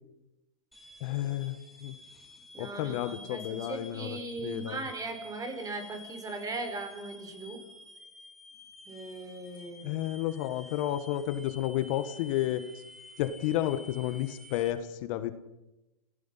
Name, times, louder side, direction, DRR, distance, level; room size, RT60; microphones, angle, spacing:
sound 1, 0.7-14.7, left 1 dB, ahead, 4.3 m, -51 dB
voice 1, 1.0-1.9 2.6-4.8 9.8-12.6 13.2-15.3, left 13 dB, 55° left, 11 dB, 1.6 m, -31 dB
voice 2, 2.5-7.6 8.9-10.0, right 2 dB, 20° right, 7 dB, 4.7 m, -39 dB
29.5 x 16.5 x 5.7 m, 0.98 s
hypercardioid pair, 115°, 19 cm